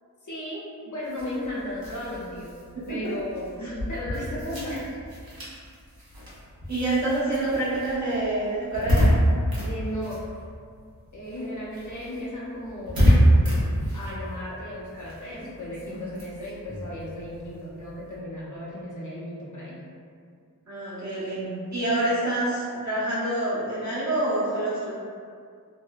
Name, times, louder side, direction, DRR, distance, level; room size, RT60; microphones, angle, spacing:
voice 1, 0.2-2.5 2.9-5.0 5.3-5.4 9.6-10.2 11.1-13.2 13.9-19.8, left 1 dB, 55° left, -7 dB, 0.7 m, -35 dB
sound 1, 1.0-10.9 11.2-18.2, equal, 70° right, 0.8 m, -27 dB
voice 2, 2.7-3.1 6.7-9.1 20.7-24.9, right 2 dB, 50° right, -11 dB, 1.1 m, -27 dB
2.7 x 2.0 x 2.3 m, 2.2 s
wide cardioid pair, 50°, 37 cm